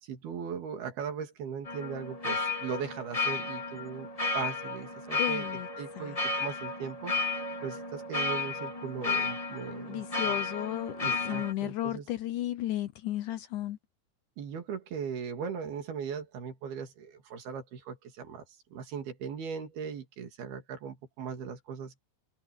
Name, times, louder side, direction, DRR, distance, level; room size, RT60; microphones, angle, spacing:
voice 1, 0.0-4.1 4.3-10.4 11.0-12.1 14.4-18.5 18.7-22.0, right 7 dB, 90° right, 4.7 m, -39 dB
sound 1, 1.7-11.5, left 3 dB, 10° left, 2.2 m, -33 dB
voice 2, 5.2-5.7 6.0-6.2 9.9-13.8, left 14 dB, 75° left, 2.0 m, -34 dB
omnidirectional pair, 4.3 m